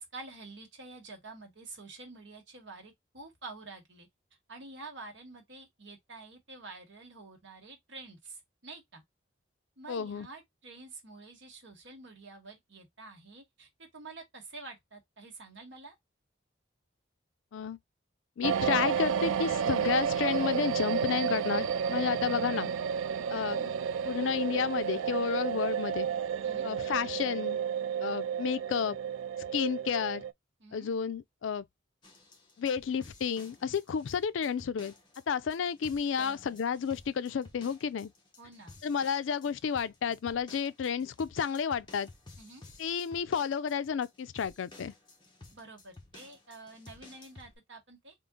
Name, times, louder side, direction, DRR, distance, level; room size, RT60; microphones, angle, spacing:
voice 1, 0.0-4.1 4.5-9.0 9.8-15.9 26.4-26.7 30.6-30.9 36.1-36.6 38.4-38.8 42.4-42.6 45.5-48.1, right 3 dB, 65° right, 1.4 m, -48 dB
voice 2, 9.9-10.3 17.5-17.8 18.4-22.7 23.3-23.7 24.0-26.1 26.6-27.6 28.0-29.0 29.5-30.2 30.7-31.6 32.6-34.9 35.3-38.1 38.8-42.1 42.8-44.9, left 7 dB, 75° left, 0.4 m, -31 dB
sound 1, 18.4-30.3, right 7 dB, 90° right, 0.3 m, -31 dB
sound 2, 32.0-47.6, left 2 dB, 25° left, 1.0 m, -54 dB
3.8 x 2.4 x 3.6 m
head